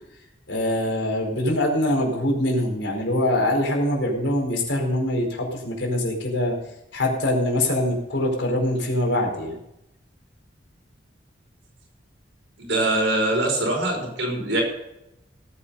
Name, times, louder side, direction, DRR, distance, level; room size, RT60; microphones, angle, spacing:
voice 1, 0.5-6.5 6.9-9.6, left 1 dB, 70° left, 1 dB, 4.6 m, -23 dB
voice 2, 12.6-14.6, right 2 dB, 80° right, 1 dB, 5.2 m, -23 dB
18.0 x 8.7 x 5.6 m, 0.86 s
head